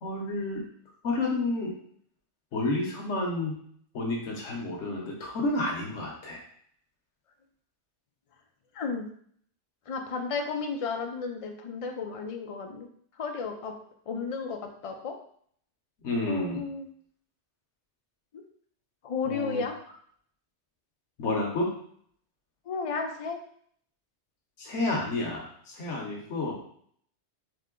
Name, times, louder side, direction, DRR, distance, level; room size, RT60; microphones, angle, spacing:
voice 1, 0.0-0.7 1.0-1.8 2.5-3.6 3.9-6.4 16.0-16.6 19.3-19.6 21.2-21.7 24.6-26.5, left 2 dB, 85° left, -1 dB, 1.2 m, -30 dB
voice 2, 8.7-9.1 9.9-12.9 13.2-13.7 14.1-15.2 16.3-16.9 19.0-19.8 22.7-23.4, left 5 dB, 40° left, 4 dB, 0.5 m, -33 dB
3.7 x 3.2 x 3.7 m, 0.62 s
omnidirectional pair, 1.2 m